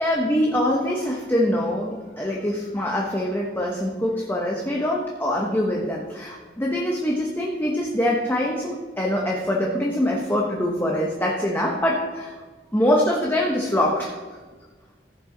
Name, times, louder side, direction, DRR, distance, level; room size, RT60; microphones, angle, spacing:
voice 1, 0.0-12.3 12.7-14.1, left 1 dB, 15° left, -1 dB, 0.9 m, -24 dB
15.0 x 5.8 x 3.8 m, 1.4 s
head